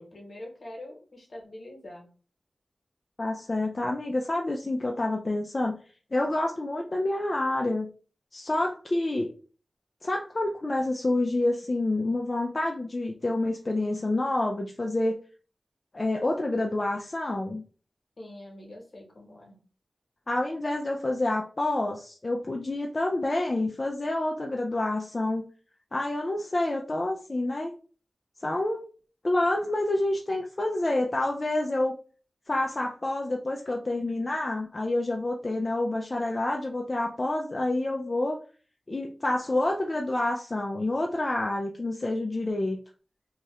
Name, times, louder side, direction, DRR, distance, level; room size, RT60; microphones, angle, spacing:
voice 1, 0.0-2.1 18.2-19.6, left 1 dB, 65° left, 0 dB, 1.1 m, -44 dB
voice 2, 3.2-5.8 6.1-7.9 8.3-9.3 10.0-15.2 15.9-17.6 20.3-25.4 25.9-27.7 28.4-28.9 29.2-31.9 32.5-38.4 38.9-42.8, left 2 dB, 40° left, 0 dB, 0.4 m, -28 dB
2.7 x 2.4 x 3.1 m, 0.39 s
wide cardioid pair, 65°, 0 cm